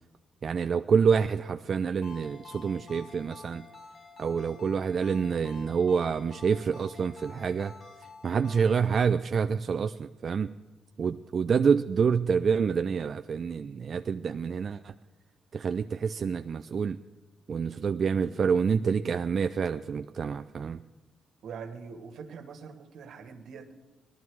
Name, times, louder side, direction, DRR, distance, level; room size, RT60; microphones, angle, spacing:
voice 1, 0.4-3.7 4.2-7.7 8.2-10.5 11.0-14.9 15.5-17.0 17.5-20.8, right 6 dB, 45° right, 9 dB, 0.4 m, -27 dB
Ringtone, 2.0-8.9, left 4 dB, 45° left, 5.0 m, -49 dB
voice 2, 21.4-23.7, right 6 dB, 70° right, 6 dB, 1.6 m, -43 dB
18.0 x 12.5 x 4.7 m, 1.2 s
cardioid pair, 90°, 0 cm